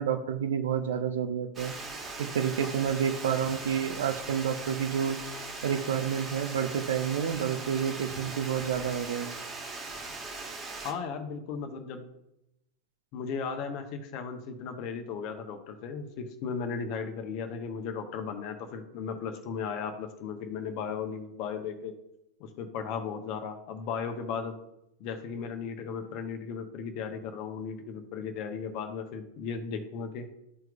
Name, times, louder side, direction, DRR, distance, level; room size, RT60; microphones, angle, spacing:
voice 1, 0.0-1.7 2.2-5.2 5.6-9.3, right 8 dB, 60° right, 8 dB, 0.6 m, -29 dB
Water, 1.5-10.9, right 3 dB, 20° right, 1.4 m, -40 dB
voice 2, 10.8-12.1 13.1-21.9 22.4-24.6 25.0-30.3, left 6 dB, 40° left, 6 dB, 1.0 m, -36 dB
12.5 x 4.5 x 2.4 m, 0.84 s
figure-of-eight pair, 90°, 0 cm